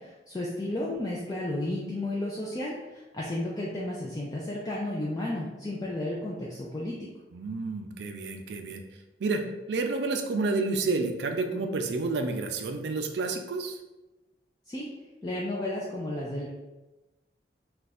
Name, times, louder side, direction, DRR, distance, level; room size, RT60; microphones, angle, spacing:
voice 1, 0.0-7.1 14.7-14.9 15.2-16.5, left 1 dB, 20° left, -5 dB, 0.4 m, -33 dB
voice 2, 7.3-8.8 9.2-9.4 9.7-13.8, right 3 dB, 75° right, 5 dB, 0.4 m, -30 dB
2.4 x 2.2 x 4.0 m, 1.1 s
head